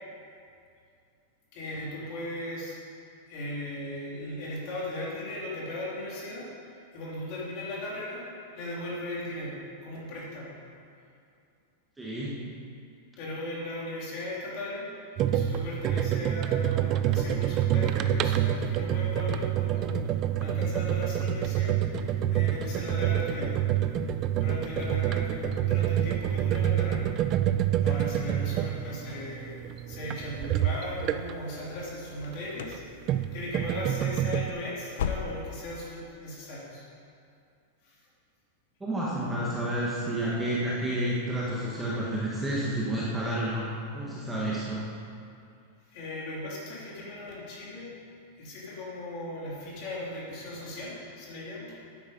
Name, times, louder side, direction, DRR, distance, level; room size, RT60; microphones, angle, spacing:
voice 1, 1.5-2.7 3.3-8.2 8.5-10.6 13.2-23.5 24.4-27.1 27.8-29.5 29.9-32.8 33.3-36.8 37.8-38.0 45.9-47.9 48.3-51.8, left 1 dB, 35° left, -6 dB, 3.1 m, -37 dB
voice 2, 12.0-12.4 38.8-43.7 43.9-44.9, right 1 dB, 5° right, -6 dB, 1.2 m, -30 dB
sound 1, 15.2-31.5 32.6-34.5, right 11 dB, 25° right, 0.4 m, -27 dB
sound 2, 32.1-32.9 33.1-33.6 33.9-34.0 34.5-35.7 36.0-36.1 36.6-36.8, left 7 dB, 75° left, 0.7 m, -35 dB
11.0 x 9.4 x 5.2 m, 2.5 s
supercardioid pair, 175°, 0 cm